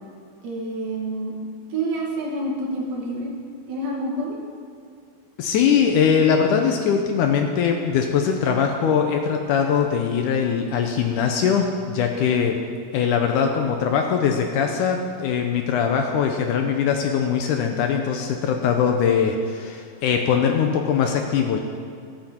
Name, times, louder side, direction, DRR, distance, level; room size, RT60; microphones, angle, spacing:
voice 1, 0.4-1.3 1.7-3.3 3.7-4.4, right 1 dB, 60° right, -3 dB, 3.5 m, -28 dB
voice 2, 5.4-12.6 12.9-21.6, left 7 dB, 75° left, 3 dB, 2.0 m, -21 dB
21.5 x 7.6 x 4.5 m, 2.3 s
omnidirectional pair, 4.2 m